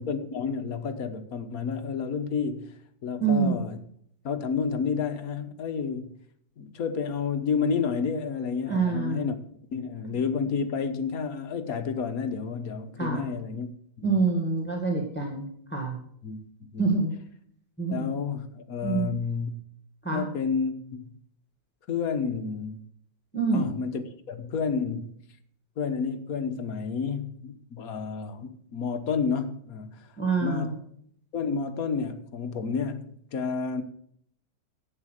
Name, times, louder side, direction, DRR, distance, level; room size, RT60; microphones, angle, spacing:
voice 1, 0.0-3.8 4.2-6.1 6.6-9.4 9.7-13.7 14.0-14.2 16.2-17.0 17.9-19.5 20.1-21.1 21.9-22.8 23.5-25.2 25.8-30.8 31.3-33.8, left 5 dB, 55° left, 8 dB, 1.3 m, -30 dB
voice 2, 3.2-3.6 8.7-9.2 13.0-13.3 14.0-15.4 15.7-15.9 16.8-17.1 17.8-18.1 18.8-19.1 20.0-20.2 23.3-23.7 30.2-30.7, right 4 dB, 5° left, 0 dB, 1.9 m, -26 dB
11.0 x 8.5 x 6.4 m, 0.66 s
omnidirectional pair, 2.1 m